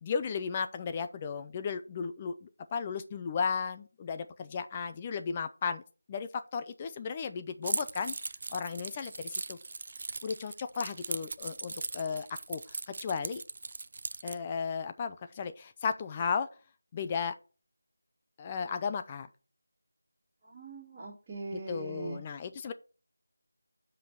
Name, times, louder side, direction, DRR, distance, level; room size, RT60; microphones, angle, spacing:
voice 1, 0.0-5.8 6.1-8.1 8.5-9.6 10.2-12.6 12.9-13.4 14.2-16.5 16.9-17.4 18.4-19.3 21.5-22.7, left 6 dB, 20° left, 10 dB, 0.5 m, -35 dB
Keys jangling, 7.6-14.4, right 3 dB, 40° right, 0.4 m, -38 dB
voice 2, 20.4-22.2, right 3 dB, 15° right, -12 dB, 2.3 m, -41 dB
7.5 x 5.3 x 6.0 m, 0.36 s
figure-of-eight pair, 170°, 0 cm